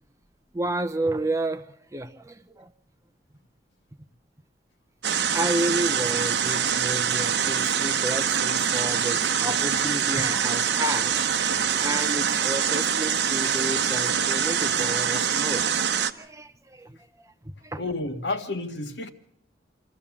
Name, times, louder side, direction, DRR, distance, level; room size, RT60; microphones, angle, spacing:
voice 1, 0.5-1.7 1.9-2.7 5.3-17.8, right 1 dB, 15° right, 0.7 m, -31 dB
sound 1, 5.0-16.1, right 7 dB, 70° right, 0.9 m, -24 dB
voice 2, 17.8-19.1, left 2 dB, 75° left, 1.7 m, -30 dB
25.5 x 14.0 x 7.2 m
head